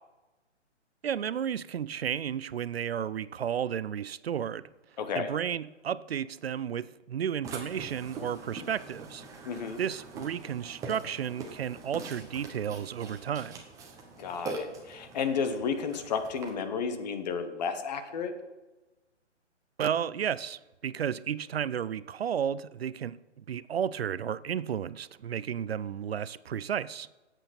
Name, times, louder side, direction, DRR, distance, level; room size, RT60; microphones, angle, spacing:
voice 1, 1.0-4.7 5.1-9.2 9.8-13.6 19.8-27.1, right 8 dB, 55° right, 0.5 m, -33 dB
voice 2, 5.0-5.3 9.4-9.8 14.2-18.3, left 6 dB, 35° left, 1.2 m, -32 dB
Burping eructation, 7.4-16.5, right 3 dB, 10° right, 1.0 m, -43 dB
17.5 x 8.1 x 4.3 m
figure-of-eight pair, 135°, 36 cm